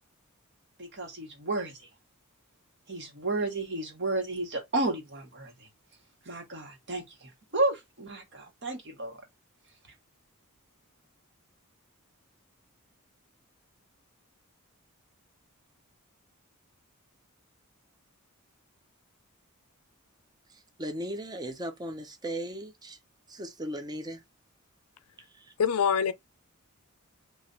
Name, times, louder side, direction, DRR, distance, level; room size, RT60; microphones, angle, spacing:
voice 1, 0.8-1.8 2.9-5.7 6.2-9.2, right 2 dB, 55° right, 1.3 m, -32 dB
voice 2, 20.8-23.0 23.3-24.2, right 1 dB, 20° right, 0.6 m, -37 dB
voice 3, 25.6-26.1, left 7 dB, 85° left, 0.5 m, -24 dB
3.2 x 2.4 x 4.0 m
head